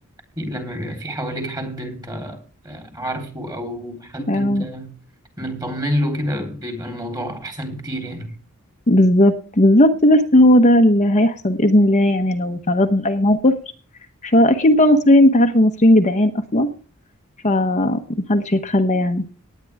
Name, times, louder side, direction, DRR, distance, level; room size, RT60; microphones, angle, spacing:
voice 1, 0.4-4.9 5.4-8.3, equal, 20° right, 3.8 m, -28 dB
voice 2, 4.3-4.6 8.9-13.5 14.2-16.7 17.4-18.0 18.3-19.2, left 1 dB, 35° left, 1.1 m, -15 dB
19.0 x 9.4 x 3.5 m
head